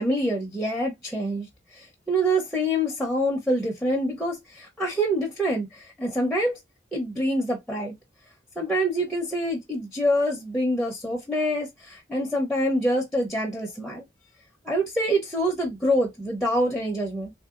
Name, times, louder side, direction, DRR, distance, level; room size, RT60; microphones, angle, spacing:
voice 1, 0.0-1.5 1.7-6.6 6.9-7.9 8.6-14.1 14.6-17.3, equal, ahead, 0.7 m, -26 dB
3.4 x 2.6 x 2.4 m
head